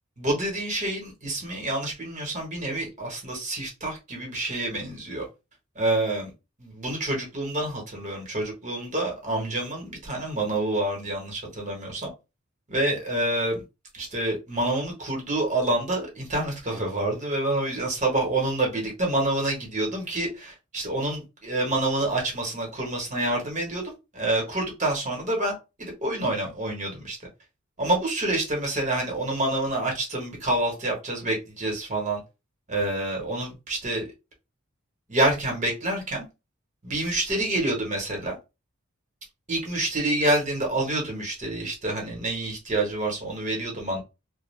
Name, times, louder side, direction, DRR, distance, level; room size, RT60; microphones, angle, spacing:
voice 1, 0.2-5.2 5.7-6.3 6.6-12.1 12.7-13.6 13.9-25.5 25.8-27.2 27.8-32.2 32.7-34.1 35.1-36.2 36.8-38.4 39.5-44.0, right 2 dB, 35° right, 1.1 m, -27 dB
2.4 x 2.2 x 3.2 m
head